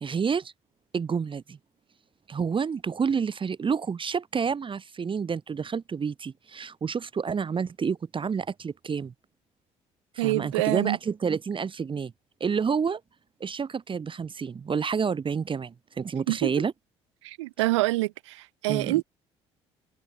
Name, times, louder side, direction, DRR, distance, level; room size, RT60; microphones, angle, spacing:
voice 1, 0.0-0.5 0.9-1.6 2.3-9.1 10.1-12.1 12.4-13.0 13.4-16.7 18.7-19.0, right 6 dB, 35° right, 1.1 m, -29 dB
voice 2, 10.2-11.0 16.3-16.5 17.2-19.0, right 20 dB, 85° right, 0.5 m, -26 dB
hypercardioid pair, 55°, 15 cm